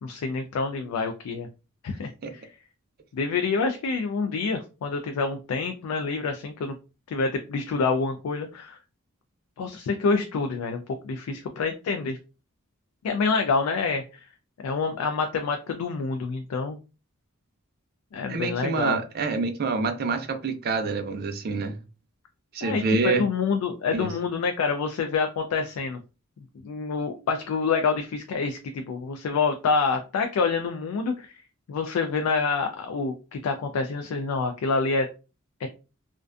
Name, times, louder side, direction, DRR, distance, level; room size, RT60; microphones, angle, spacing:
voice 1, 0.0-1.5 1.8-2.4 3.1-6.7 7.1-8.8 9.6-12.2 13.0-14.0 14.6-16.8 18.1-19.0 22.6-26.0 26.6-31.3 31.7-35.1 35.6-35.7, left 4 dB, 90° left, 0.3 m, -27 dB
voice 2, 18.3-21.8 22.5-23.2 23.9-24.1, right 4 dB, 45° right, 0.4 m, -27 dB
2.4 x 2.2 x 2.4 m
head